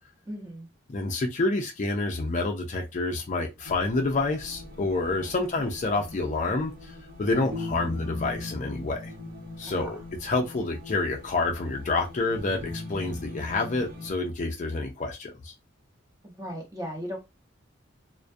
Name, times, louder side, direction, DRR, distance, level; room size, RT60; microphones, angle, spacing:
voice 1, 0.3-0.7 5.4-5.6 9.7-9.9 16.2-17.2, equal, 15° right, 0.8 m, -37 dB
voice 2, 0.9-6.7 7.2-9.1 9.6-15.5, left 3 dB, 40° left, 0.4 m, -28 dB
sound 1, 3.6-14.1, left 2 dB, 55° right, 1.1 m, -40 dB
2.3 x 2.1 x 2.6 m
head